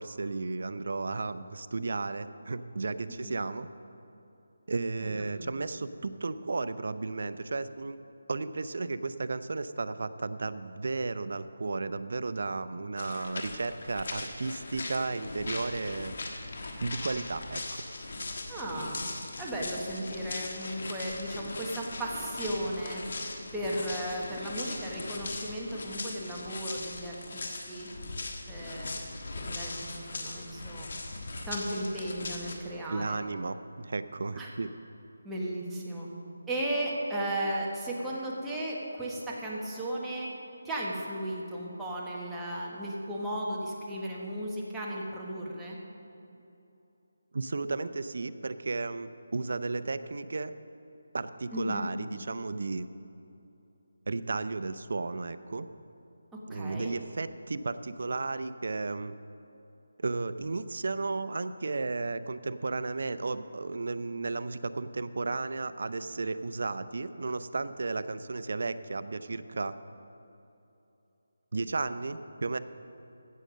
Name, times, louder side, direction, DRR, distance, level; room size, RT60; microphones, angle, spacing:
voice 1, 0.0-3.7 4.7-8.0 8.3-16.2 16.8-17.8 32.9-34.7 47.3-50.5 51.1-52.9 54.1-55.7 56.5-59.1 60.0-69.7 71.5-72.6, right 3 dB, 60° right, 12 dB, 0.5 m, -34 dB
voice 2, 5.0-5.6 18.5-19.0 19.4-23.0 23.5-27.9 28.5-28.9 29.4-30.9 31.4-33.2 34.3-34.5 35.2-36.1 36.5-40.3 40.6-45.8 51.5-51.8 56.3-56.9, right 1 dB, 5° right, -5 dB, 1.2 m, -35 dB
sound 1, 13.0-32.6, left 2 dB, 55° left, 1.4 m, -39 dB
16.0 x 6.5 x 6.3 m, 2.9 s
figure-of-eight pair, 170°, 0 cm